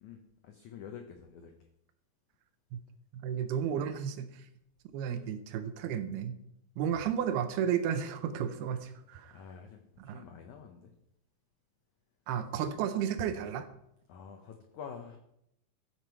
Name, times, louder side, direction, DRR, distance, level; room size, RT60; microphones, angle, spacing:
voice 1, 0.0-1.7 9.3-10.9 14.1-15.2, left 7 dB, 80° left, 5 dB, 1.7 m, -48 dB
voice 2, 3.1-4.5 4.9-6.4 6.8-9.4 10.0-10.2 12.3-13.7, right 8 dB, 80° right, 10 dB, 2.6 m, -33 dB
14.0 x 7.3 x 4.6 m, 0.77 s
omnidirectional pair, 4.8 m